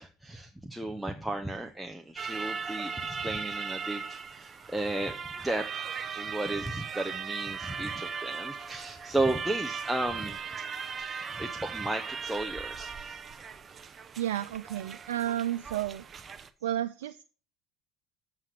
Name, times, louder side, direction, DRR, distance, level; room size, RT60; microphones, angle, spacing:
voice 1, 0.0-10.6 11.0-13.2, right 2 dB, 5° right, 3 dB, 0.9 m, -34 dB
sound 1, 2.2-16.5, right 5 dB, 35° right, 0.8 m, -38 dB
voice 2, 14.2-16.0 16.6-17.2, right 12 dB, 85° right, 10 dB, 0.4 m, -32 dB
7.4 x 6.0 x 6.7 m, 0.39 s
hypercardioid pair, 80°, 0 cm